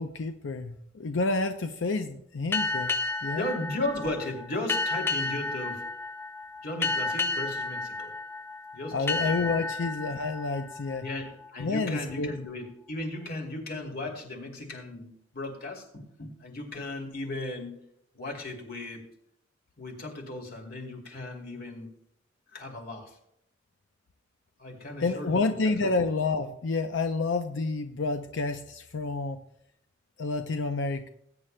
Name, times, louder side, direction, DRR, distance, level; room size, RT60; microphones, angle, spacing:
voice 1, 0.0-3.0 3.2-3.5 8.9-11.1 11.6-12.3 25.0-29.4 30.2-31.1, left 3 dB, 85° left, 7 dB, 0.6 m, -29 dB
sound 1, 2.5-11.8, left 3 dB, 15° left, 0.5 m, -32 dB
voice 2, 3.3-5.8 6.6-8.1 8.7-9.3 11.0-17.7 18.1-19.0 19.8-21.9 22.5-23.2 24.6-25.7, left 1 dB, 50° left, 1 dB, 2.6 m, -36 dB
20.5 x 8.9 x 2.2 m, 0.75 s
head